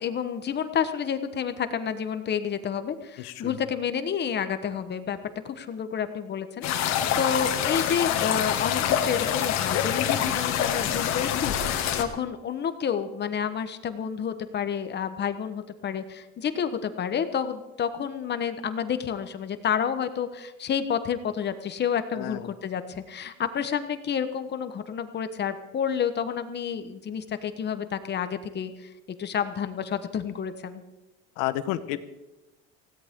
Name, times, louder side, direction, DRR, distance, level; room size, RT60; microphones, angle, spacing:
voice 1, 0.0-5.2 5.4-28.9 29.2-30.8, left 7 dB, 35° left, 10 dB, 1.2 m, -30 dB
sound 1, 6.6-12.0, left 9 dB, 65° left, 2.0 m, -26 dB
voice 2, 31.4-32.0, left 14 dB, 90° left, 13 dB, 1.1 m, -30 dB
19.0 x 16.5 x 3.7 m, 1.0 s
cardioid pair, 130°, 29 cm